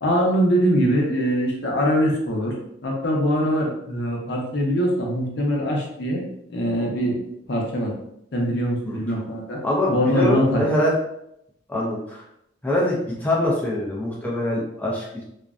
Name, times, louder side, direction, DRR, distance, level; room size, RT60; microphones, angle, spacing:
voice 1, 0.0-2.5 2.8-6.2 6.5-7.1 7.5-7.9 8.3-9.6 9.9-10.6, equal, 60° left, -2 dB, 0.6 m, -22 dB
voice 2, 9.6-10.9 11.7-12.2 12.6-15.2, left 1 dB, 10° left, -5 dB, 0.4 m, -24 dB
2.4 x 2.1 x 2.4 m, 0.77 s
head